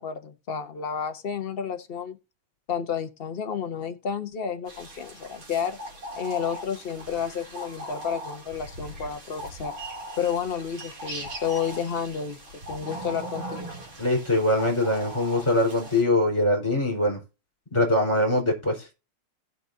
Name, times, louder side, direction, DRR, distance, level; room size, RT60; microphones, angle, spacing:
voice 1, 0.0-2.2 2.7-5.8 6.2-9.8 10.2-12.4 12.7-13.7, left 7 dB, 85° left, 0.5 m, -31 dB
sound 1, 4.7-16.0, right 1 dB, 65° right, 3.6 m, -40 dB
voice 2, 14.0-17.2 17.7-18.9, left 1 dB, 15° left, 4.2 m, -23 dB
17.5 x 5.9 x 2.7 m
omnidirectional pair, 2.3 m